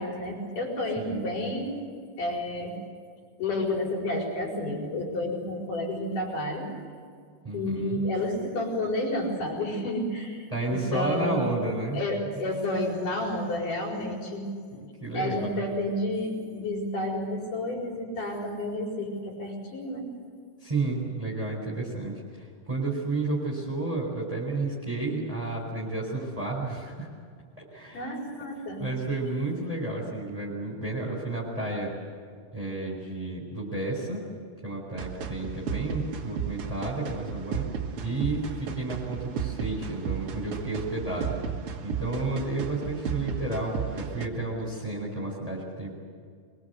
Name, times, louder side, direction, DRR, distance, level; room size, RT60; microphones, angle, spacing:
voice 1, 0.0-1.8 2.2-2.8 3.4-6.7 7.5-11.4 11.9-14.5 15.1-20.1 27.9-28.9, left 1 dB, 45° left, 0 dB, 5.8 m, -30 dB
voice 2, 7.4-8.0 10.5-12.0 14.7-15.6 20.6-27.1 27.6-28.2 28.8-31.9 32.5-34.3 34.6-37.6 38.0-41.4 41.8-45.9, right 2 dB, 10° right, -3 dB, 3.6 m, -31 dB
sound 1, 35.0-44.3, right 7 dB, 75° right, 1.3 m, -34 dB
24.5 x 22.5 x 8.1 m, 2.1 s
omnidirectional pair, 5.2 m